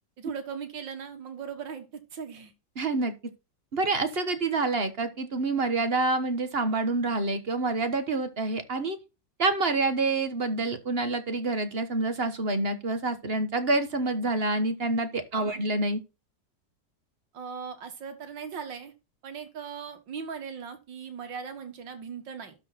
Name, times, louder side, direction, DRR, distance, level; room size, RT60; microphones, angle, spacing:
voice 1, 0.2-2.5 15.3-15.6 17.3-18.9 19.2-22.6, right 6 dB, 85° right, 2.3 m, -39 dB
voice 2, 2.8-3.1 3.7-9.0 9.4-16.0, right 2 dB, 35° right, 1.3 m, -27 dB
12.5 x 4.6 x 4.1 m
omnidirectional pair, 2.0 m